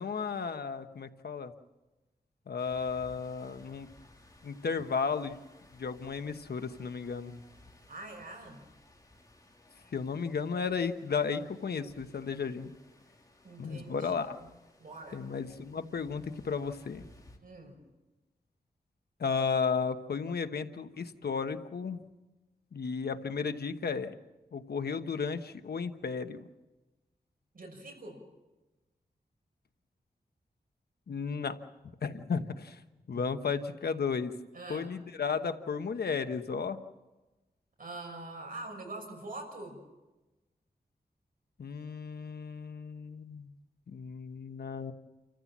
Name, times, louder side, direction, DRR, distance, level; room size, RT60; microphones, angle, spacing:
voice 1, 0.0-1.5 2.5-3.9 4.4-5.4 5.7-7.4 9.9-12.7 13.6-14.4 15.1-17.0 19.2-22.0 22.7-24.1 24.5-26.4 31.1-31.6 32.0-32.8 33.1-34.3 34.7-36.8 41.6-43.5 43.9-44.9, left 5 dB, 85° left, 8 dB, 1.2 m, -34 dB
sound 1, 2.6-17.4, left 1 dB, 25° left, 3.4 m, -59 dB
voice 2, 7.9-8.6 13.4-14.5 14.8-15.2 17.4-17.8 27.5-28.2 34.5-34.9 37.8-39.8, right 2 dB, 65° right, 2 dB, 6.3 m, -44 dB
29.0 x 14.5 x 7.4 m, 1.1 s
wide cardioid pair, 100°, 16 cm